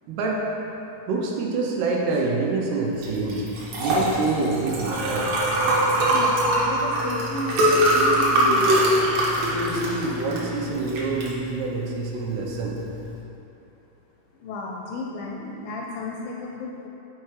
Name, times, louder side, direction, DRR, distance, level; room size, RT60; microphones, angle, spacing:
voice 1, 0.1-0.5 1.1-3.5 3.8-5.3 9.5-12.8, right 3 dB, 85° right, -1 dB, 2.8 m, -26 dB
Liquid, 3.0-13.1, right 1 dB, 65° right, 1.8 m, -23 dB
voice 2, 6.1-8.8 14.4-16.9, left 2 dB, 80° left, -1 dB, 2.1 m, -33 dB
6.9 x 4.6 x 4.7 m, 2.8 s
omnidirectional pair, 4.5 m